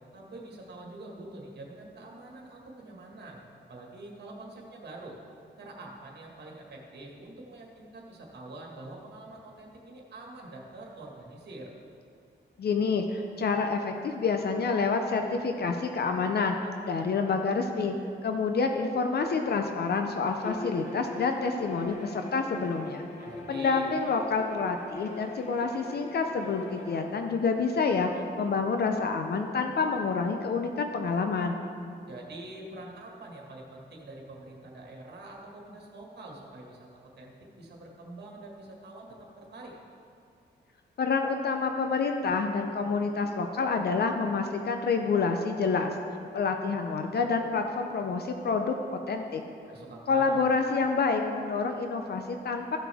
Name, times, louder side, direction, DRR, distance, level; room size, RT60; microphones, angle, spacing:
voice 1, 0.1-3.4 3.7-5.2 5.6-11.7 23.2-23.9 32.1-36.9 37.2-39.7 49.7-50.4, right 2 dB, 60° right, -1 dB, 1.8 m, -45 dB
voice 2, 12.6-16.6 16.8-18.0 18.2-23.0 23.5-31.6 41.0-45.9 46.3-49.4 50.1-52.8, left 4 dB, 60° left, 5 dB, 0.6 m, -28 dB
Bowed string instrument, 20.4-27.1, left 2 dB, 40° left, 1.3 m, -42 dB
14.5 x 6.0 x 3.5 m, 2.5 s
wide cardioid pair, 110°, 19 cm